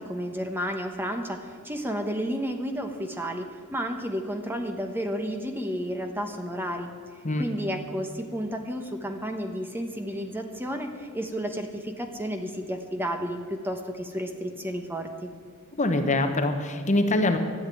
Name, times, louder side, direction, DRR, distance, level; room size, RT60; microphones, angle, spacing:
voice 1, 0.0-6.9 7.4-15.3, equal, 10° right, 5 dB, 1.0 m, -32 dB
voice 2, 15.8-17.4, left 2 dB, 35° left, 6 dB, 1.1 m, -24 dB
13.0 x 8.1 x 9.7 m, 2.1 s
head